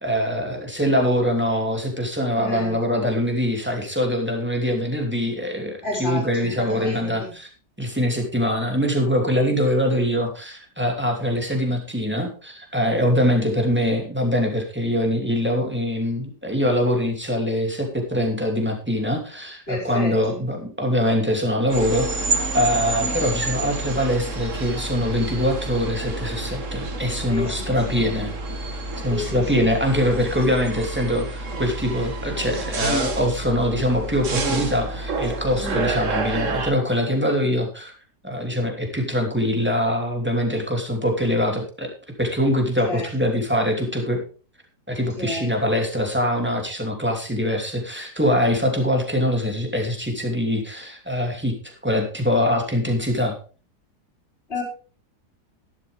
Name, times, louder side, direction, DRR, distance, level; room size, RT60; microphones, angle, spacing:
voice 1, 0.0-7.5 7.8-22.2 22.5-28.3 29.0-37.9 38.2-41.9 42.2-44.2 44.9-53.3, equal, 5° right, 2 dB, 2.8 m, -23 dB
voice 2, 2.4-2.8 5.8-7.3 13.0-13.3 19.7-20.4 27.3-28.0 29.1-29.7 30.3-30.6 35.6-35.8 42.8-43.4 45.2-45.4 54.5-54.6, left 2 dB, 35° left, -3 dB, 5.2 m, -31 dB
sound 1, 21.7-36.7, right 3 dB, 50° right, 1.8 m, -28 dB
12.0 x 12.0 x 3.5 m, 0.37 s
omnidirectional pair, 1.7 m